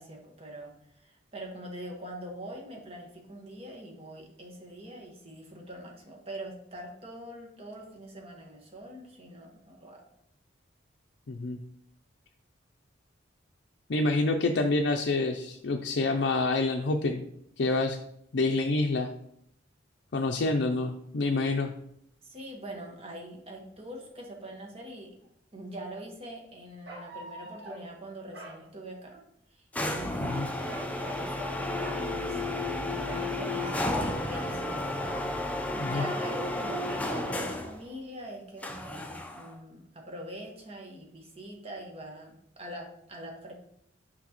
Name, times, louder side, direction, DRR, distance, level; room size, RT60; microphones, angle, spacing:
voice 1, 0.0-10.0 22.2-25.1 25.5-29.2 29.5-31.6 31.9-32.4 32.7-34.9 35.7-39.0 39.3-43.5, right 1 dB, 35° right, 0 dB, 1.4 m, -43 dB
voice 2, 11.3-11.6 13.9-17.2 17.6-18.0 18.3-19.1 20.1-21.7 30.2-30.4 35.8-36.0, left 2 dB, 65° left, 3 dB, 0.5 m, -27 dB
sound 1, 25.2-25.3 26.9-27.9 28.3-28.6 30.7-32.0 33.1-33.9 34.3-34.6 35.0-35.3, right 1 dB, 70° right, 1.7 m, -43 dB
sound 2, 29.7-37.8 38.6-39.5, left 1 dB, 10° left, 0.6 m, -32 dB
6.1 x 5.8 x 3.0 m, 0.73 s
head